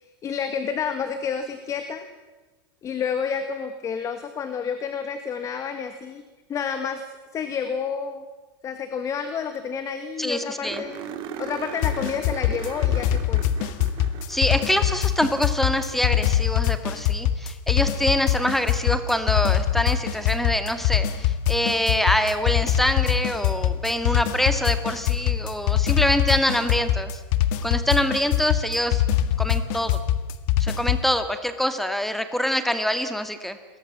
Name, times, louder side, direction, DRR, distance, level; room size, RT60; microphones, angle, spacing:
voice 1, 0.2-2.1 2.8-6.2 6.5-7.0 7.3-8.3 8.6-11.0 11.4-13.4, left 6 dB, 25° left, 9 dB, 1.9 m, -29 dB
sound 1, 9.3-9.4 9.5-9.6 10.0-10.1 10.7-16.1 18.4-18.5 21.4-21.5, right 8 dB, 45° right, 3.9 m, -39 dB
voice 2, 10.2-10.8 14.3-27.1 27.6-29.0 29.4-30.0 30.6-33.6, equal, ahead, 9 dB, 2.1 m, -25 dB
sound 2, 11.8-31.1, left 11 dB, 55° left, 1.8 m, -23 dB
29.5 x 22.5 x 7.6 m, 1.2 s
supercardioid pair, 145°, 12 cm